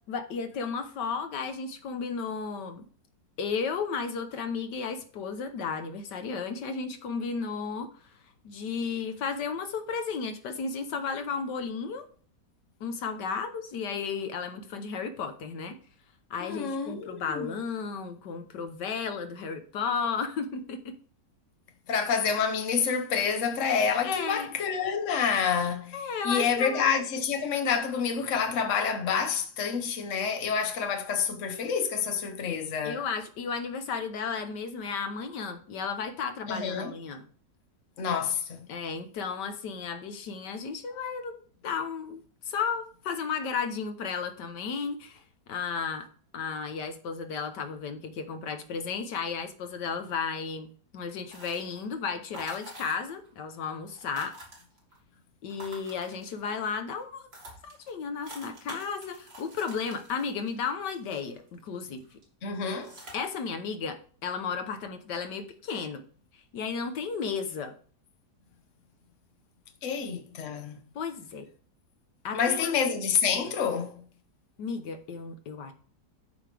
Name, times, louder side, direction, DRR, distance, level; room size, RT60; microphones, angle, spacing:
voice 1, 0.1-2.9 3.4-8.1 8.4-12.0 12.8-15.8 16.3-20.9 24.0-24.5 25.9-26.9 32.8-37.3 38.7-41.4 41.6-45.2 45.5-46.1 46.3-50.7 50.9-54.3 55.4-57.3 57.6-62.2 63.1-66.0 66.5-67.7 70.9-71.5 72.2-72.7 74.6-75.7, left 5 dB, 75° left, 1.5 m, -34 dB
voice 2, 16.4-17.4 21.9-33.0 36.5-36.9 38.0-38.7 62.4-62.9 69.8-70.8 72.3-74.0, left 6 dB, 50° left, 1.3 m, -28 dB
sound 1, 51.3-51.9 52.3-53.3 53.5-53.6 53.8-55.0 55.5-56.6 57.0-57.1 57.3-61.6 62.0-62.2 62.7-63.1, equal, 55° right, 3.3 m, -47 dB
12.5 x 5.3 x 3.4 m
omnidirectional pair, 1.9 m